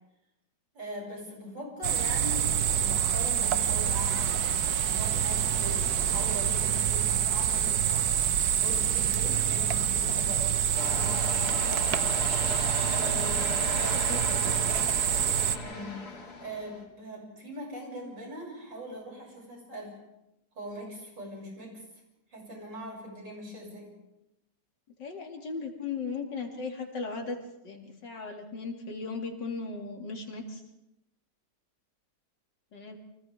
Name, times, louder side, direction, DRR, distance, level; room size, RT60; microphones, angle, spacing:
voice 1, 0.7-4.4 4.8-8.0 8.5-12.1 12.9-14.8 15.6-20.0 20.5-21.8 22.3-23.9, equal, 85° right, -2 dB, 8.0 m, -41 dB
sound 1, 1.8-15.6, right 9 dB, 65° right, 1.3 m, -27 dB
sound 2, 10.7-16.8, left 2 dB, 60° left, 3.9 m, -36 dB
voice 2, 13.7-14.2 25.0-27.4 27.6-30.6 32.7-33.0, left 4 dB, 75° left, 2 dB, 3.2 m, -37 dB
30.0 x 25.0 x 3.6 m, 0.91 s
omnidirectional pair, 1.9 m